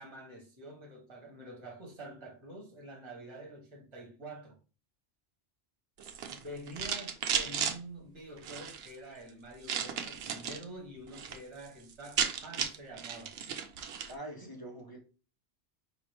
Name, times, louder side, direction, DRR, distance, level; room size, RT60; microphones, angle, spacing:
voice 1, 0.0-4.5 6.2-13.3 14.4-14.6, right 1 dB, 25° right, 1.2 m, -47 dB
sound 1, 6.0-7.8 8.4-8.9 9.6-10.6 11.0-11.4 11.7-11.8 11.9-14.1, right 7 dB, 70° right, 0.8 m, -34 dB
voice 2, 14.1-15.0, right 1 dB, 20° left, 0.9 m, -44 dB
5.0 x 2.9 x 3.3 m
omnidirectional pair, 1.1 m